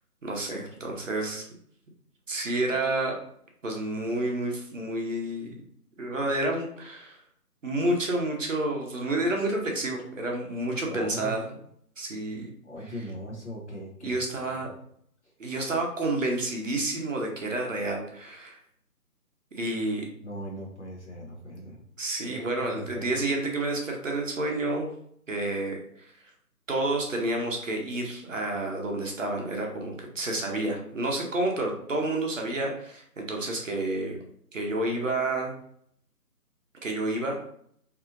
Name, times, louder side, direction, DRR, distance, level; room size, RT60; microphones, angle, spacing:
voice 1, 0.2-1.5 2.3-3.2 3.6-5.6 6.0-7.2 7.6-11.4 12.0-12.5 14.0-14.7 15.4-18.6 19.5-20.1 22.0-24.9 25.3-25.8 26.7-34.2 34.5-35.5 36.8-37.4, right 2 dB, 55° right, 0 dB, 0.7 m, -29 dB
voice 2, 10.9-11.4 12.6-14.6 20.2-21.8 22.2-23.1, equal, 50° left, -1 dB, 0.7 m, -39 dB
2.7 x 2.5 x 2.5 m, 0.66 s
figure-of-eight pair, 165°, 47 cm